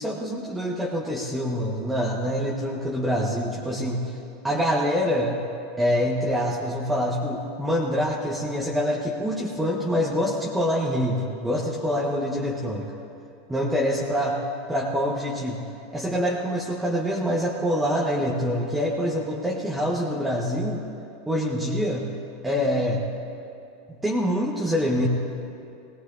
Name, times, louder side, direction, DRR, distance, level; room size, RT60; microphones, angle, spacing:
voice 1, 0.0-4.0 4.4-5.4 5.8-12.9 13.5-14.4 14.7-15.6 15.9-20.8 21.3-22.1 22.4-23.1 23.9-25.1, equal, 10° right, -3 dB, 1.4 m, -25 dB
19.5 x 17.0 x 2.7 m, 2.6 s
figure-of-eight pair, 85°, 0 cm